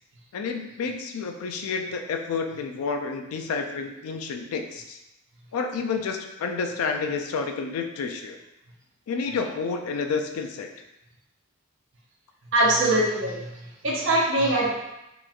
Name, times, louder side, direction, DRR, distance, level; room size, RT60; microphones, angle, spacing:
voice 1, 0.3-5.0 5.5-8.4 9.1-10.7, left 5 dB, 90° left, 5 dB, 0.3 m, -30 dB
voice 2, 12.5-13.5 13.8-14.7, right 1 dB, 60° right, -3 dB, 0.6 m, -22 dB
2.9 x 2.2 x 2.4 m, 0.92 s
head